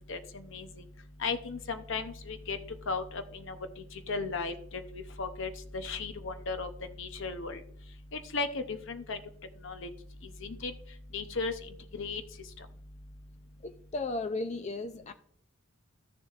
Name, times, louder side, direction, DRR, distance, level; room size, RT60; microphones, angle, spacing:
voice 1, 0.1-0.7 1.2-2.6 2.9-3.6 3.9-6.7 7.0-7.6 8.1-9.2 9.6-9.9 10.4-10.7 11.1-11.5 11.9-12.2, left 4 dB, 60° left, 9 dB, 0.7 m, -35 dB
voice 2, 13.6-15.1, left 2 dB, 30° left, 9 dB, 0.4 m, -35 dB
13.5 x 7.1 x 2.4 m, 0.64 s
head